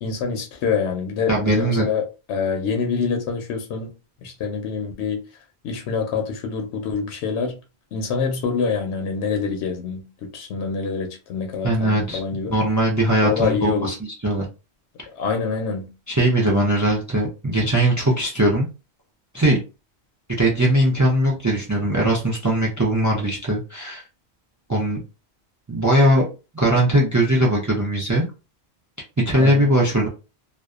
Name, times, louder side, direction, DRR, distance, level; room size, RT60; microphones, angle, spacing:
voice 1, 0.0-3.9 4.2-5.2 5.6-7.6 7.9-12.6 13.2-13.9 15.1-15.9 29.4-29.7, left 5 dB, 85° left, 0.9 m, -26 dB
voice 2, 1.3-1.9 11.6-12.2 12.5-13.9 14.2-14.4 16.1-18.7 19.3-19.6 20.4-24.0 24.7-25.0 25.7-26.2 26.5-28.3 29.2-30.1, right 1 dB, 25° right, 0.4 m, -20 dB
2.6 x 2.1 x 2.3 m
omnidirectional pair, 1.1 m